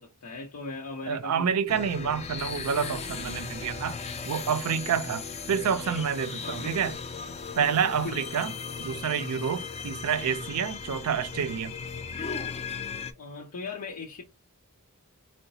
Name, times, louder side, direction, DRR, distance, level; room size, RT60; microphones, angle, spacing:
voice 1, 0.0-1.8 6.4-6.7 8.0-8.2 13.2-14.2, left 3 dB, 90° left, 0.7 m, -39 dB
voice 2, 1.1-4.0 4.3-7.0 7.6-8.5 8.8-11.8, right 7 dB, 90° right, 0.4 m, -28 dB
sound 1, 1.7-13.1, left 5 dB, 30° left, 0.4 m, -37 dB
3.9 x 2.1 x 2.6 m
head